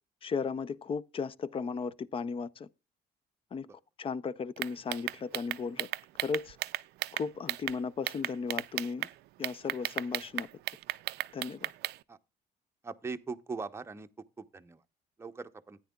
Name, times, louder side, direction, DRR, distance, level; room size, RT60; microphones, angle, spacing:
voice 1, 0.2-2.7 3.5-3.7 4.0-5.9 6.2-6.6 7.1-9.1 9.4-10.5 11.3-11.7, left 5 dB, 30° left, 0.5 m, -35 dB
sound 1, 4.6-7.8 8.1-9.1 9.4-12.0, right 18 dB, 80° right, 0.4 m, -34 dB
voice 2, 12.8-14.1 14.4-14.8 15.2-15.8, right 4 dB, 15° right, 0.7 m, -40 dB
13.5 x 9.6 x 2.3 m
cardioid pair, 110°, 17 cm